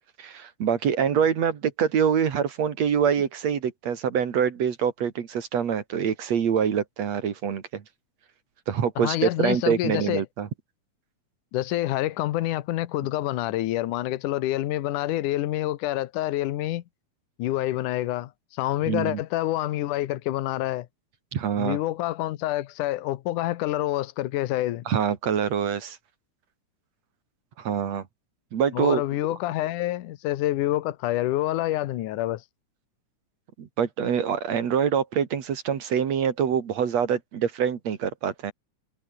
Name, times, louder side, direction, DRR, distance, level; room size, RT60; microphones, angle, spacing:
voice 1, 0.2-7.8 8.7-10.5 18.9-19.2 21.3-21.8 24.9-26.0 27.6-28.1 28.5-29.0 33.6-38.5, right 7 dB, 60° right, 3.1 m, -25 dB
voice 2, 9.0-10.2 11.5-16.8 17.4-20.9 21.6-24.8 28.7-32.4, left 15 dB, 85° left, 2.5 m, -27 dB
omnidirectional pair, 3.6 m